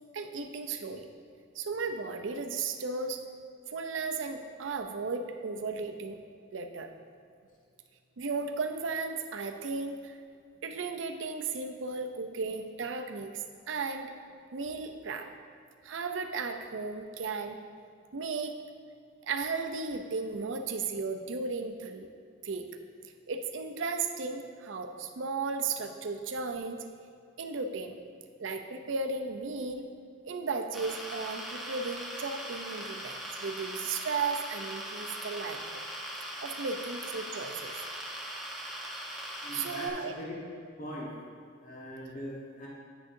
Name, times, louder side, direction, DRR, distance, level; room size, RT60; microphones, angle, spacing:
voice 1, 0.1-1.1 1.5-3.2 3.7-6.2 6.5-6.9 8.2-10.2 10.6-14.1 14.5-15.3 15.8-17.6 18.1-18.6 19.2-22.1 22.4-22.7 23.0-26.8 27.1-28.0 28.4-29.8 30.2-35.6 36.4-37.7 39.5-40.1, right 4 dB, 70° right, 6 dB, 0.6 m, -35 dB
sound 1, 30.7-39.9, equal, ahead, 0.9 m, -40 dB
voice 2, 39.4-40.3 40.8-41.1 41.6-42.7, equal, 45° left, -5 dB, 1.2 m, -41 dB
9.2 x 6.4 x 2.6 m, 2.3 s
head